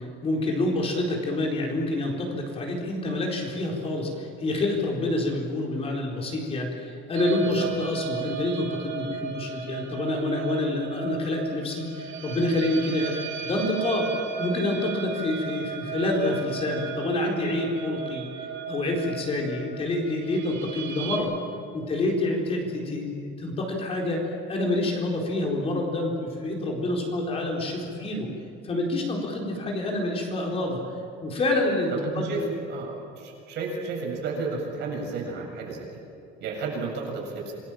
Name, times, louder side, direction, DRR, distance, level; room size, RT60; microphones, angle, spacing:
voice 1, 0.2-13.2 13.4-18.2 18.7-21.3 21.7-24.2 24.5-28.3 28.6-30.8 31.2-32.4, left 2 dB, 30° left, 0 dB, 4.3 m, -27 dB
sound 1, 7.1-21.2, right 7 dB, 75° right, 6.8 m, -36 dB
voice 2, 32.0-35.9 36.4-37.5, right 3 dB, 60° right, 0 dB, 7.5 m, -32 dB
27.5 x 21.0 x 7.5 m, 2.7 s
cardioid pair, 180°, 21 cm